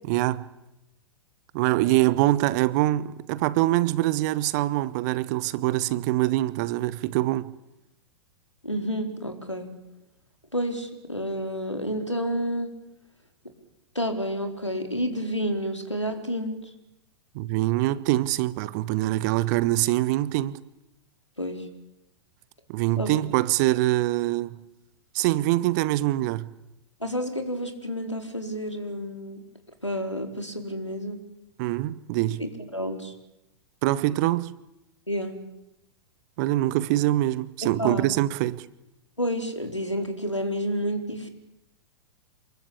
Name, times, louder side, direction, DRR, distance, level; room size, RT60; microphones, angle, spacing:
voice 1, 0.1-0.4 1.5-7.5 17.3-20.6 22.7-24.6 25.1-26.5 31.6-32.4 33.8-34.6 36.4-38.7, right 16 dB, 40° right, 1.1 m, -24 dB
voice 2, 8.6-9.7 10.5-12.7 13.9-16.6 21.4-21.6 23.0-23.2 27.0-29.4 29.8-31.2 32.4-33.1 35.1-35.4 37.6-38.1 39.2-41.3, equal, 90° left, 4.4 m, -30 dB
28.0 x 22.0 x 8.7 m
figure-of-eight pair, 100°, 15 cm